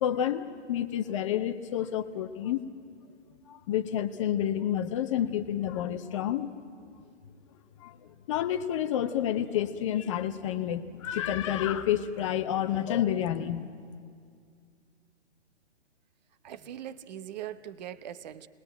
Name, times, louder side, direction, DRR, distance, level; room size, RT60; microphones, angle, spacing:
voice 1, 0.0-2.6 3.5-6.5 7.8-7.9 8.3-13.7, left 10 dB, 25° left, 8 dB, 0.8 m, -29 dB
voice 2, 16.4-18.5, right 11 dB, 35° right, 14 dB, 0.9 m, -41 dB
27.5 x 21.0 x 9.0 m, 2.2 s
hypercardioid pair, 140°, 35 cm